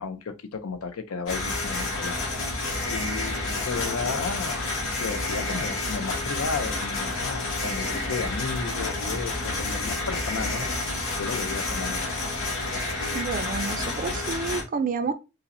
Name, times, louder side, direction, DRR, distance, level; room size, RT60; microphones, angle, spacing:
voice 1, 0.0-2.2 2.4-4.7 4.9-10.7 11.2-12.1, left 5 dB, 85° left, 0.5 m, -33 dB
sound 1, 1.3-14.6, left 2 dB, 70° left, 1.9 m, -29 dB
voice 2, 13.1-15.1, right 4 dB, 40° right, 0.4 m, -29 dB
5.3 x 2.0 x 2.6 m
head